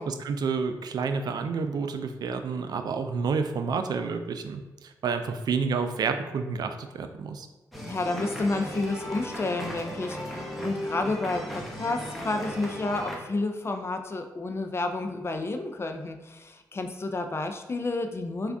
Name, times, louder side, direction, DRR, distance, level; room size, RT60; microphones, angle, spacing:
voice 1, 0.0-7.5, right 5 dB, 60° right, 8 dB, 0.3 m, -29 dB
sound 1, 7.7-13.2, equal, ahead, 0.8 m, -36 dB
voice 2, 7.8-18.5, left 2 dB, 35° left, 5 dB, 0.4 m, -30 dB
3.4 x 2.4 x 3.4 m, 1.1 s
supercardioid pair, 50°, 8 cm